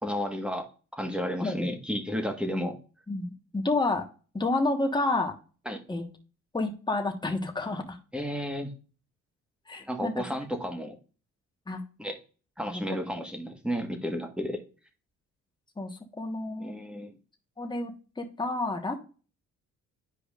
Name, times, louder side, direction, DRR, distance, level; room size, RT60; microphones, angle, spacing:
voice 1, 0.0-0.7 1.0-2.7 5.6-5.8 8.1-8.7 9.8-10.9 12.0-12.2 12.6-14.6 16.6-17.1, equal, 5° right, 5 dB, 1.4 m, -32 dB
voice 2, 3.1-4.0 4.3-5.3 5.9-6.0 6.5-8.0 9.7-10.2 11.7-11.8 12.7-13.3 15.8-16.8 17.6-19.0, left 2 dB, 15° left, 3 dB, 1.4 m, -30 dB
10.0 x 4.9 x 2.5 m, 0.37 s
cardioid pair, 90°, 30 cm